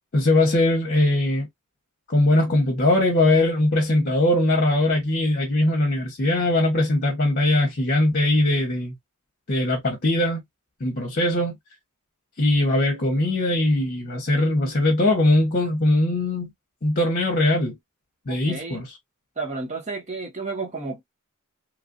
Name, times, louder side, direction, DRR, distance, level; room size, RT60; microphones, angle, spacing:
voice 1, 0.1-1.5 2.1-8.9 9.5-10.4 10.8-11.6 12.4-16.5 16.8-17.8 18.3-18.9, left 1 dB, 45° left, 0.9 m, -21 dB
voice 2, 18.3-18.8 19.4-21.0, right 3 dB, 30° right, 1.2 m, -32 dB
3.1 x 2.5 x 2.5 m
head